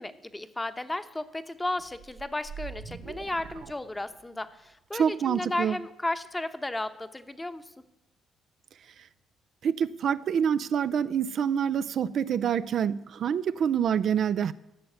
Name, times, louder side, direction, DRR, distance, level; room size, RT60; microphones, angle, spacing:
voice 1, 0.0-7.6, left 2 dB, 15° left, 1.0 m, -34 dB
sound 1, 1.8-4.5, right 6 dB, 85° right, 1.1 m, -43 dB
voice 2, 4.9-5.8 9.6-14.5, right 8 dB, 65° right, 0.4 m, -26 dB
14.0 x 6.3 x 9.3 m
cardioid pair, 90°, 0 cm